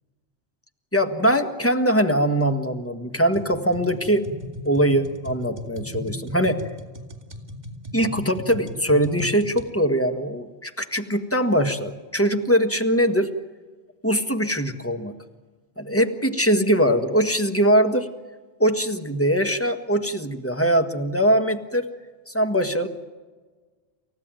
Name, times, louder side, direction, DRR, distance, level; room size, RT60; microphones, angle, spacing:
voice 1, 0.9-4.3 4.6-6.6 7.9-13.3 14.0-15.1 15.8-18.1 18.6-21.9 22.3-22.9, equal, 10° left, 6 dB, 1.7 m, -22 dB
sound 1, 3.3-9.7, left 1 dB, 40° right, 2.4 m, -37 dB
29.0 x 15.5 x 9.2 m, 1.3 s
omnidirectional pair, 1.2 m